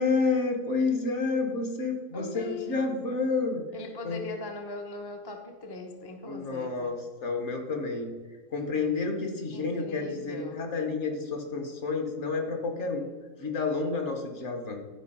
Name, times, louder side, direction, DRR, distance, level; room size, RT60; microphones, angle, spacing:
voice 1, 0.0-3.6 4.0-4.2 6.3-8.1 8.5-13.0 13.4-14.8, left 4 dB, 50° left, 3 dB, 1.5 m, -29 dB
voice 2, 2.1-2.9 3.7-7.0 9.5-10.7, left 3 dB, 20° left, 3 dB, 0.7 m, -40 dB
11.0 x 5.1 x 5.5 m, 1.4 s
omnidirectional pair, 1.6 m